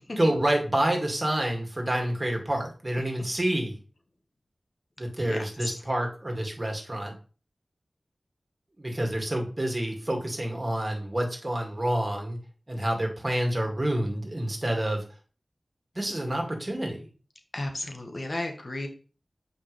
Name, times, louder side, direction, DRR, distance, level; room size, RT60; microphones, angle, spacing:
voice 1, 0.2-3.7 5.0-7.1 8.8-12.4 12.7-15.0 16.0-17.0, right 1 dB, 30° right, 1 dB, 2.2 m, -28 dB
voice 2, 5.2-5.7 17.5-18.9, left 1 dB, 55° left, 4 dB, 1.4 m, -34 dB
7.5 x 4.9 x 3.3 m, 0.36 s
wide cardioid pair, 45°, 0 cm